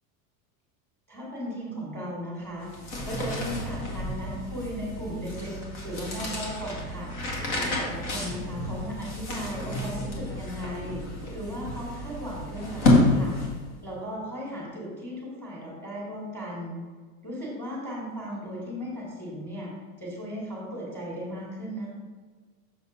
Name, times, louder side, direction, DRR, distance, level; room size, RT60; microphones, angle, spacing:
voice 1, 1.1-2.7 3.0-5.6 5.8-7.1 7.6-11.0 11.3-13.3 13.8-16.8 17.2-19.7 20.0-21.9, equal, 5° left, -5 dB, 2.4 m, -36 dB
sound 1, 2.6-13.8, left 1 dB, 60° left, 1.9 m, -29 dB
6.8 x 4.2 x 5.7 m, 1.5 s
supercardioid pair, 175°, 42 cm